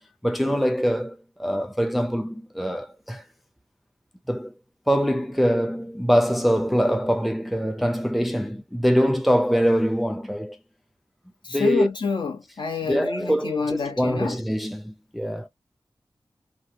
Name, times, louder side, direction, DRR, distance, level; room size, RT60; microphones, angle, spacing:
voice 1, 0.2-3.2 4.3-4.5 4.9-10.6 11.5-11.9 12.8-15.5, equal, ahead, 0.5 m, -23 dB
voice 2, 11.4-14.3, left 5 dB, 70° left, 1.1 m, -28 dB
3.3 x 2.2 x 2.8 m
cardioid pair, 50°, 8 cm